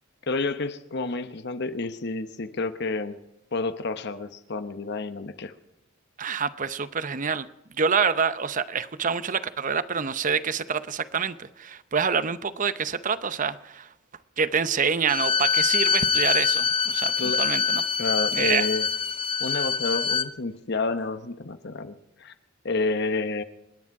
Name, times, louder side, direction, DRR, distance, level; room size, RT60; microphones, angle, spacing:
voice 1, 0.3-3.2 3.5-5.5 17.2-17.4 18.0-18.9 19.4-22.3 22.6-23.4, left 3 dB, 55° left, 10 dB, 1.0 m, -29 dB
voice 2, 6.2-7.5 7.8-13.9 14.4-17.8 18.3-18.7, right 6 dB, 40° right, 14 dB, 0.7 m, -27 dB
Bowed string instrument, 15.1-20.3, left 6 dB, 25° left, 0.6 m, -24 dB
28.5 x 10.0 x 4.7 m, 0.97 s
head